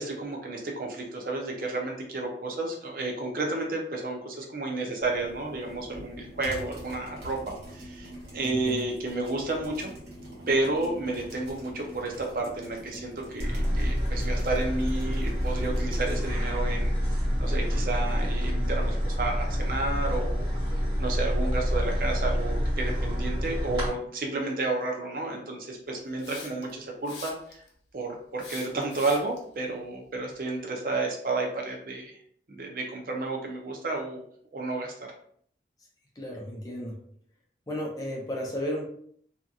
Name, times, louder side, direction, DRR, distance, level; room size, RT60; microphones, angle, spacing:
voice 1, 0.0-7.4 7.7-9.9 10.5-16.9 17.4-20.5 21.0-27.6 27.9-32.2 32.5-34.2 34.5-35.1, right 2 dB, 50° right, 1 dB, 0.5 m, -31 dB
sound 1, 5.0-16.3, equal, 75° right, 1.2 m, -44 dB
voice 2, 8.4-8.9 36.2-37.0 37.7-38.9, equal, 20° left, -2 dB, 0.6 m, -33 dB
sound 2, 13.4-23.9, equal, 30° right, 1.3 m, -27 dB
Hiss, 26.2-26.7 27.1-27.7 28.4-29.4, left 4 dB, 80° left, 0.7 m, -43 dB
2.8 x 2.5 x 2.3 m, 0.62 s
head